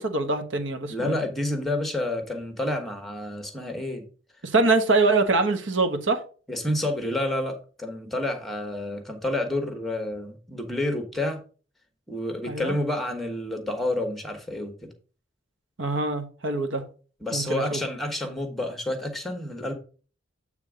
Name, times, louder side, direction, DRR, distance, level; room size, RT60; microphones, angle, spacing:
voice 1, 0.0-1.2 4.4-6.2 12.5-12.7 15.8-16.8 17.3-17.8, right 3 dB, 65° right, 1.2 m, -24 dB
voice 2, 0.9-4.0 6.5-11.4 12.1-14.9 17.2-19.7, left 1 dB, ahead, 1.2 m, -29 dB
8.5 x 3.5 x 5.0 m
head